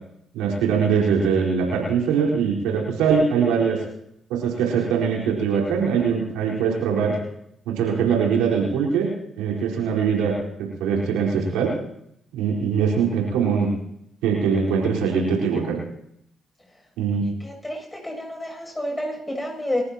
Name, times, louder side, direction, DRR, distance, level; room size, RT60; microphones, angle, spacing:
voice 1, 0.3-3.8 4.3-7.2 7.7-9.1 9.4-11.7 12.3-13.7 14.2-15.8 17.0-17.3, right 6 dB, 80° right, -3 dB, 4.5 m, -22 dB
voice 2, 17.4-19.8, left 1 dB, 20° left, 2 dB, 7.9 m, -29 dB
29.0 x 14.5 x 3.0 m, 0.74 s
hypercardioid pair, 45°, 0 cm